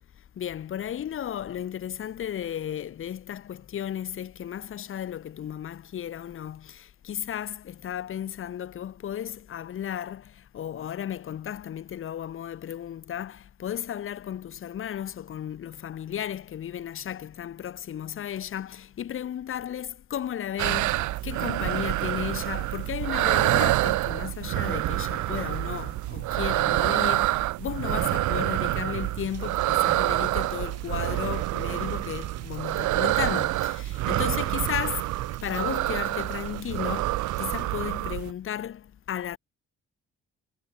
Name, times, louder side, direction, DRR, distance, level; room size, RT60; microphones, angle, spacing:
voice 1, 0.4-39.4, left 10 dB, 45° left, 0.7 m, -34 dB
sound 1, 20.6-38.3, right 17 dB, 75° right, 0.5 m, -27 dB
sound 2, 29.2-37.7, right 10 dB, 55° right, 1.2 m, -50 dB
cardioid pair, 80°, 30 cm